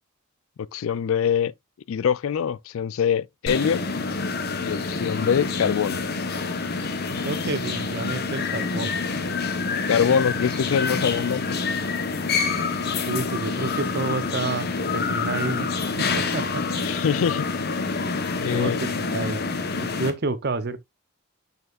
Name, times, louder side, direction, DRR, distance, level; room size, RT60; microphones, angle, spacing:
voice 1, 0.7-1.5 1.9-3.8 4.6-6.1 9.9-11.5 16.8-17.4 18.4-18.8, left 7 dB, 65° left, 0.3 m, -23 dB
sound 1, 3.5-20.1, left 4 dB, 45° left, 1.0 m, -27 dB
voice 2, 7.2-9.0 12.3-12.5 13.1-15.7 16.0-16.6 18.0-19.4 19.7-20.8, right 3 dB, 50° right, 0.7 m, -30 dB
6.7 x 6.6 x 2.4 m
head